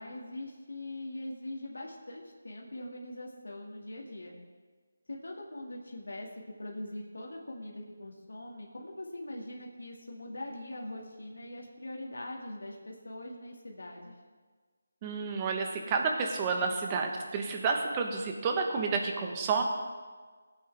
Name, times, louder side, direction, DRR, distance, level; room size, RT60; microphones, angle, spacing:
voice 1, 0.0-4.3 5.1-6.3 6.6-14.1, left 1 dB, 90° left, -1 dB, 2.1 m, -42 dB
voice 2, 15.0-19.6, right 4 dB, 20° right, 2 dB, 1.1 m, -30 dB
17.5 x 8.6 x 3.5 m, 1.5 s
figure-of-eight pair, 170°, 0 cm